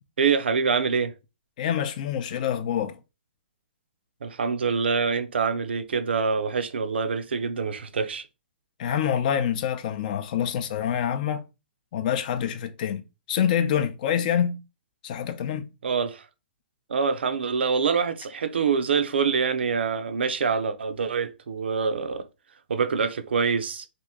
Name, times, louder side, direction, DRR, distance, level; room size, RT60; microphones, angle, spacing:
voice 1, 0.2-1.1 4.2-8.3 15.8-16.3 16.9-22.3 22.7-23.9, right 5 dB, 85° right, 0.5 m, -25 dB
voice 2, 1.6-3.0 8.8-11.4 11.9-13.0 13.3-14.6 15.0-15.7, left 9 dB, 50° left, 0.5 m, -26 dB
2.9 x 2.6 x 3.5 m
hypercardioid pair, 140°, 6 cm